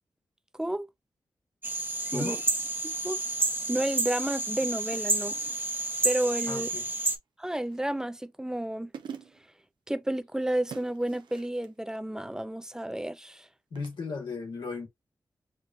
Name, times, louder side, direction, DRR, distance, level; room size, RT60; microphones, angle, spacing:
voice 1, 0.5-0.9 2.1-2.4 2.8-3.2 3.7-5.4 6.0-6.7 7.4-8.9 9.9-13.5, right 1 dB, 10° right, 0.5 m, -31 dB
sound 1, 1.6-7.2, right 2 dB, 25° right, 0.8 m, -30 dB
sound 2, 2.2-2.8 4.9-5.7 7.5-8.1 8.6-8.7 8.9-9.5 10.7-11.7 13.8-14.0, right 7 dB, 90° right, 0.6 m, -45 dB
voice 2, 6.5-6.8 13.7-14.9, left 4 dB, 85° left, 1.7 m, -36 dB
5.1 x 2.4 x 2.6 m
cardioid pair, 50°, 8 cm